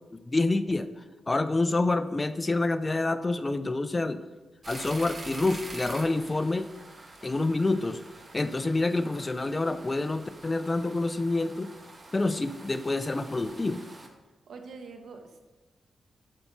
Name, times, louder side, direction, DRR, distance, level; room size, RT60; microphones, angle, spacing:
voice 1, 0.1-4.2 4.7-6.7 7.2-8.0 8.3-11.7 12.1-13.9, left 2 dB, 25° left, 11 dB, 0.5 m, -27 dB
sound 1, 4.6-14.1, right 2 dB, 35° right, 1.3 m, -46 dB
voice 2, 14.5-15.4, right 4 dB, 80° right, 4 dB, 1.3 m, -44 dB
8.9 x 5.8 x 5.5 m, 1.1 s
wide cardioid pair, 115°, 0 cm